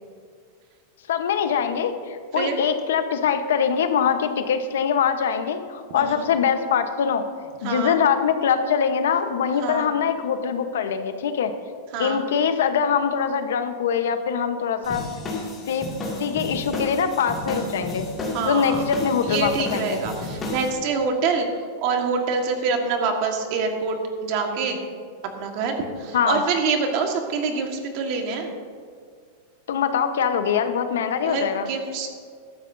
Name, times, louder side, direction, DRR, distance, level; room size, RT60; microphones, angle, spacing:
voice 1, 1.1-7.2 7.6-11.5 12.0-15.1 15.7-15.9 16.2-18.1 18.4-20.0 26.1-26.4 29.7-31.7, left 7 dB, 90° left, 8 dB, 1.1 m, -23 dB
voice 2, 5.9-6.3 7.6-8.0 9.6-9.9 11.9-12.2 18.3-18.8 19.2-21.5 21.8-24.0 24.2-24.8 25.4-28.5 31.2-32.1, right 5 dB, 45° right, 3 dB, 1.6 m, -25 dB
sound 1, 14.8-20.7, left 2 dB, 15° left, 2.4 m, -32 dB
14.5 x 12.5 x 2.7 m, 2.1 s
supercardioid pair, 160°, 0 cm